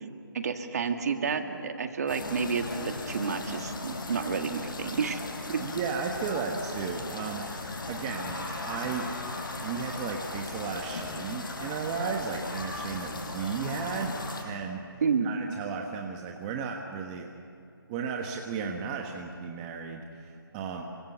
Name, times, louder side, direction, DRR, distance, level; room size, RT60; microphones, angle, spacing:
voice 1, 0.0-5.2 5.5-5.6 15.0-15.4, right 5 dB, 40° right, 6 dB, 2.0 m, -30 dB
sound 1, 2.1-14.4, left 2 dB, 60° left, 6.2 m, -37 dB
voice 2, 5.6-7.6 7.9-9.1 9.6-17.3 17.9-20.9, right 5 dB, 15° right, 2 dB, 1.2 m, -35 dB
28.5 x 24.5 x 7.3 m, 2.4 s
figure-of-eight pair, 165°, 13 cm